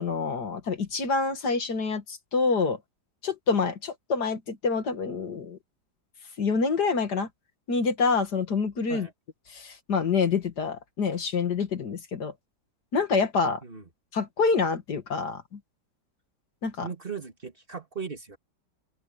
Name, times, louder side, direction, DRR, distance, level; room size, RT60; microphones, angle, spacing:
voice 1, 0.0-2.8 3.2-5.6 6.4-7.3 7.7-9.1 9.5-12.3 12.9-13.6 14.1-15.6 16.6-16.9, left 4 dB, 70° left, 2.5 m, -27 dB
voice 2, 16.8-18.4, right 6 dB, 30° right, 2.5 m, -37 dB
open air
omnidirectional pair, 1.8 m